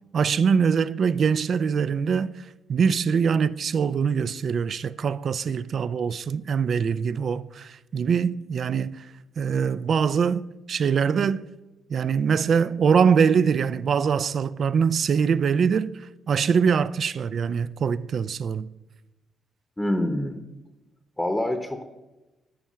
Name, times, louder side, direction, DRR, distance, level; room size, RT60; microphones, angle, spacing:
voice 1, 0.1-2.4 2.7-9.0 9.4-11.4 11.9-15.9 16.3-18.7, right 6 dB, 55° right, 0.3 m, -23 dB
voice 2, 19.8-20.4 21.2-21.8, left 1 dB, 10° left, 0.8 m, -26 dB
10.0 x 4.6 x 5.6 m
cardioid pair, 90°, 0 cm